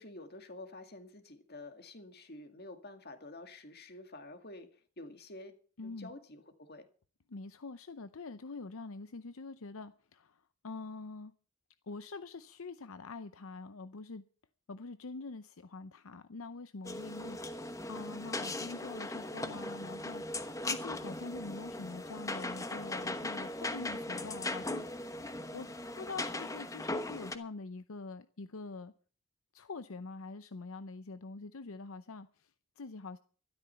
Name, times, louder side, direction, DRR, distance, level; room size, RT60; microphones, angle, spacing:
voice 1, 0.0-5.5 5.8-6.9, left 2 dB, 45° left, 2.1 m, -49 dB
voice 2, 5.8-6.1 7.3-11.3 11.9-14.2 14.7-17.6 17.9-24.8 25.2-25.7 25.9-28.9 29.5-33.2, left 3 dB, 70° left, 0.7 m, -45 dB
sound 1, 16.9-27.4, left 2 dB, 15° left, 1.0 m, -39 dB
13.0 x 12.5 x 5.7 m
head